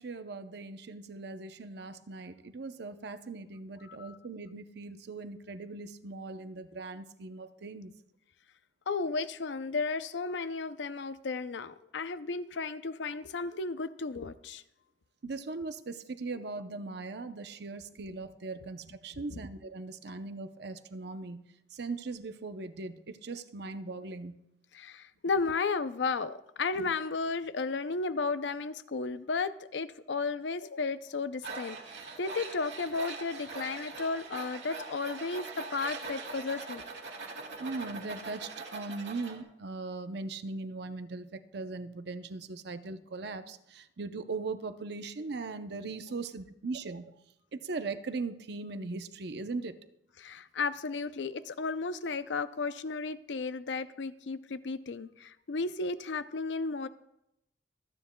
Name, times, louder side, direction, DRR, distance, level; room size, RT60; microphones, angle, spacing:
voice 1, 0.0-7.9 15.2-21.4 21.7-24.4 37.6-47.1 47.5-49.8, right 3 dB, 65° right, 10 dB, 0.7 m, -39 dB
voice 2, 8.9-14.6 24.7-31.8 32.2-36.9 50.2-56.9, left 4 dB, 80° left, 12 dB, 0.6 m, -34 dB
Tools, 31.4-39.4, right 3 dB, 85° right, 1.8 m, -42 dB
25.0 x 9.4 x 2.2 m, 0.83 s
head